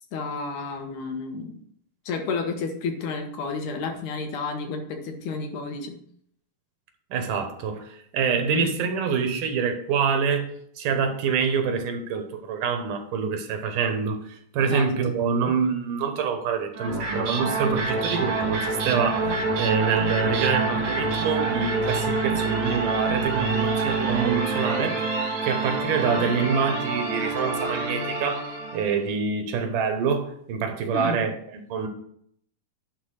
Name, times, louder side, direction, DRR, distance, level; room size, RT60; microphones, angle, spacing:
voice 1, 0.1-1.6 2.1-6.0 8.5-8.8 14.7-14.9 15.4-15.5 26.1-26.3 30.9-31.2, left 4 dB, 75° left, 5 dB, 2.6 m, -31 dB
voice 2, 7.1-10.5 10.8-19.3 19.6-25.0 25.4-28.4 28.7-31.3 31.7-31.9, right 6 dB, 90° right, 6 dB, 2.8 m, -26 dB
sound 1, 16.7-29.0, right 3 dB, 60° right, 3.2 m, -26 dB
10.5 x 4.1 x 6.4 m, 0.66 s
omnidirectional pair, 3.6 m